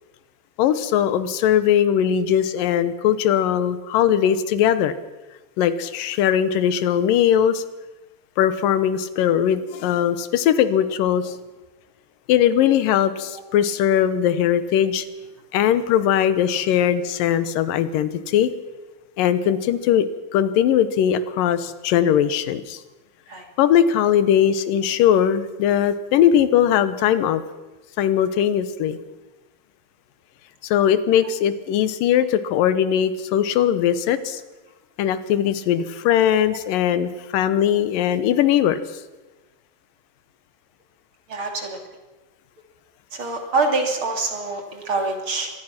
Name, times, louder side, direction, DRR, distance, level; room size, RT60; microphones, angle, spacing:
voice 1, 0.6-4.9 5.6-7.6 8.4-11.4 12.3-15.1 15.5-18.5 19.2-20.1 20.3-22.8 23.6-27.4 28.0-29.0 30.6-34.4 35.0-38.8, left 10 dB, 75° left, 13 dB, 2.7 m, -20 dB
voice 2, 41.3-41.8 43.1-45.5, right 3 dB, 40° right, 3 dB, 3.3 m, -25 dB
24.5 x 19.0 x 6.0 m, 1.2 s
omnidirectional pair, 4.0 m